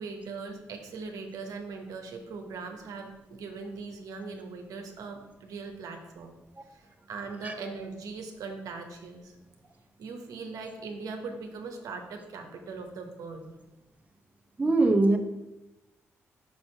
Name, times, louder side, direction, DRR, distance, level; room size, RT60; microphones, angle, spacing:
voice 1, 0.0-6.3 6.7-9.3 10.0-13.5, right 4 dB, 70° right, 4 dB, 0.9 m, -40 dB
voice 2, 14.6-15.2, right 2 dB, 25° right, 4 dB, 0.8 m, -22 dB
5.7 x 4.2 x 4.4 m, 0.98 s
supercardioid pair, 50°, 6 cm